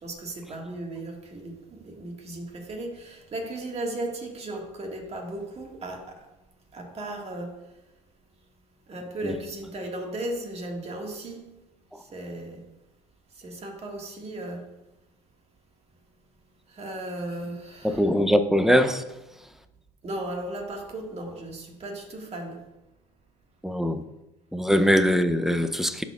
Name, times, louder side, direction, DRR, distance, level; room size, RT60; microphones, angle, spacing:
voice 1, 0.0-6.2 6.7-7.6 8.9-11.5 12.0-12.6 13.4-14.7 16.7-18.1 20.0-22.6, right 1 dB, 35° right, 1.8 m, -36 dB
voice 2, 17.8-19.0 23.6-24.0 24.5-26.0, equal, ahead, 0.5 m, -22 dB
11.5 x 4.2 x 2.4 m
hypercardioid pair, 70°, 17 cm